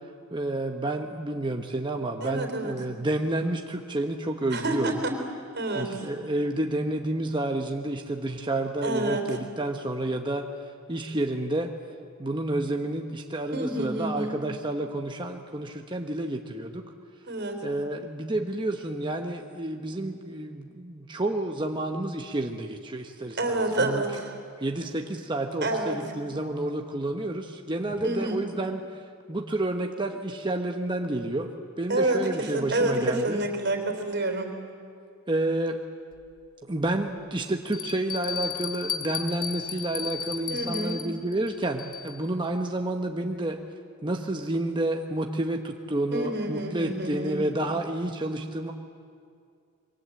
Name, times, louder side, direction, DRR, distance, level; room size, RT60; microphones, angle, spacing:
voice 1, 0.3-5.0 5.7-10.5 10.9-11.7 12.2-16.9 17.6-24.1 24.6-29.0 29.3-33.4 35.3-35.8 36.7-43.6 44.0-48.7, right 1 dB, 20° right, 3 dB, 1.0 m, -30 dB
voice 2, 2.2-2.7 4.5-5.1 5.5-5.9 8.8-9.2 13.5-14.3 17.3-17.6 23.4-24.3 25.6-26.0 27.9-28.4 31.9-34.5 40.5-41.0 46.1-47.4, right 2 dB, 50° right, 4 dB, 3.7 m, -28 dB
Bell, 36.1-36.2 36.9-37.0 37.7-42.3, left 7 dB, 40° left, 1.2 m, -34 dB
27.0 x 23.0 x 7.7 m, 2.3 s
head